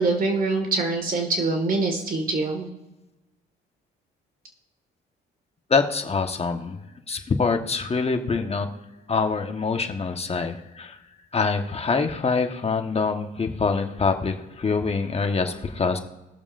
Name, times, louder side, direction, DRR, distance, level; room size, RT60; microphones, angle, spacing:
voice 1, 0.0-2.7, right 3 dB, 45° right, 4 dB, 1.9 m, -24 dB
voice 2, 5.7-6.8 7.1-8.7 9.1-11.0 11.3-16.0, left 4 dB, 30° left, 5 dB, 1.2 m, -25 dB
20.5 x 7.0 x 2.6 m, 1.0 s
cardioid pair, 90°, 20 cm